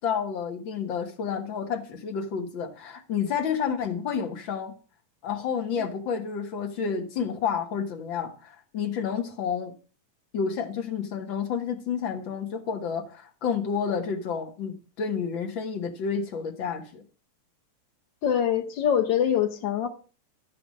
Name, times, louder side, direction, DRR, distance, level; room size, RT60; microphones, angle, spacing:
voice 1, 0.0-4.7 5.2-9.7 10.3-17.0, left 6 dB, 50° left, 1.8 m, -30 dB
voice 2, 18.2-19.9, left 9 dB, 75° left, 1.0 m, -24 dB
12.5 x 4.9 x 7.4 m
omnidirectional pair, 3.4 m